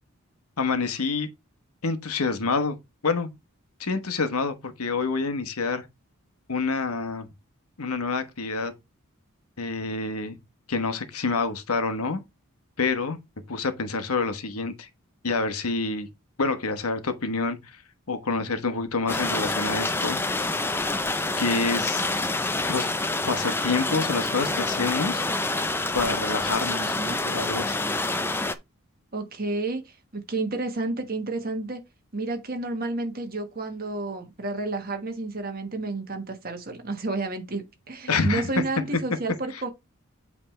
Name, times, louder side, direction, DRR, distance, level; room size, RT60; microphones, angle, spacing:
voice 1, 0.6-1.3 1.8-2.8 3.0-3.3 3.8-5.8 6.5-7.3 7.8-8.7 9.6-10.4 10.7-12.2 12.8-13.2 13.5-14.9 15.2-16.1 16.4-17.6 18.1-20.2 21.4-22.1 22.7-22.9 23.2-25.2 25.9-26.9 27.2-27.8 38.1-38.4 39.5-39.6, left 4 dB, 90° left, 1.1 m, -27 dB
sound 1, 19.1-28.6, left 2 dB, 10° left, 0.4 m, -27 dB
voice 2, 26.8-27.2 29.1-31.8 32.1-39.7, right 2 dB, 40° right, 1.4 m, -31 dB
7.9 x 3.5 x 4.4 m
head